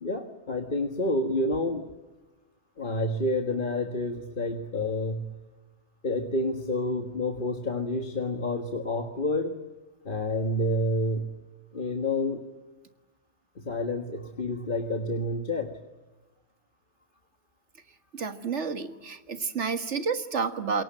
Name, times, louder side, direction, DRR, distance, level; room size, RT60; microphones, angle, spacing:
voice 1, 0.0-1.9 2.8-5.4 6.0-9.6 10.1-11.4 11.7-12.4 13.6-15.8, left 1 dB, 45° left, 5 dB, 1.7 m, -29 dB
voice 2, 18.1-20.8, right 5 dB, 80° right, 9 dB, 2.0 m, -30 dB
28.0 x 22.5 x 7.5 m, 1.1 s
omnidirectional pair, 1.2 m